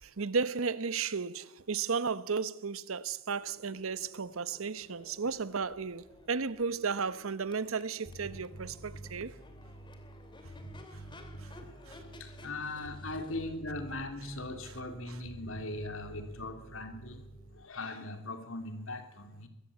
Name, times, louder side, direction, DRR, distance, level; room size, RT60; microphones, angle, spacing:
voice 1, 0.0-9.4 10.9-11.0 11.4-11.5 11.9-12.0 15.1-15.2, right 5 dB, 90° right, 0.9 m, -34 dB
Crowd / Race car auto racing / Accelerating revving vroom, 3.2-17.0, left 1 dB, 25° left, 2.8 m, -57 dB
Bass guitar, 8.0-17.6, right 1 dB, 55° left, 3.0 m, -48 dB
voice 2, 12.2-17.2 17.5-19.5, left 2 dB, 75° left, 3.2 m, -40 dB
22.5 x 15.5 x 8.6 m
head